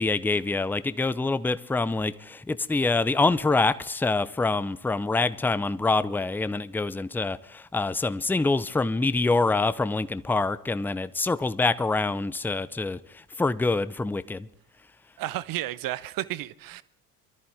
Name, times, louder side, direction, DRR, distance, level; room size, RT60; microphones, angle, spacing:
voice 1, 0.0-14.5, left 3 dB, 5° left, 0.6 m, -26 dB
voice 2, 15.2-16.8, right 15 dB, 50° right, 0.9 m, -32 dB
23.0 x 14.0 x 3.5 m
figure-of-eight pair, 55°, 45 cm